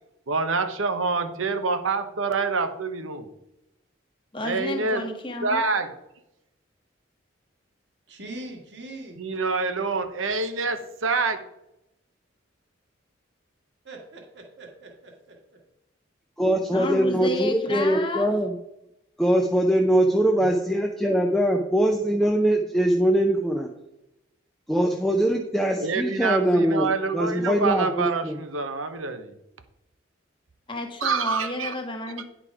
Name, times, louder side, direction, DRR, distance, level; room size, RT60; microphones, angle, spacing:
voice 1, 0.3-3.3 4.4-5.1 5.4-6.0 9.2-11.4 25.8-29.3 31.0-31.7, right 4 dB, 85° right, 0.9 m, -26 dB
voice 2, 4.3-5.6 16.7-18.3 20.4-20.5 30.7-32.3, left 2 dB, 25° left, 1.2 m, -31 dB
voice 3, 8.1-9.2 13.8-15.4, right 2 dB, 60° right, 1.8 m, -41 dB
voice 4, 16.4-18.5 19.2-23.7 24.7-26.9 27.1-28.4, right 1 dB, ahead, 0.5 m, -22 dB
9.9 x 5.0 x 4.8 m
head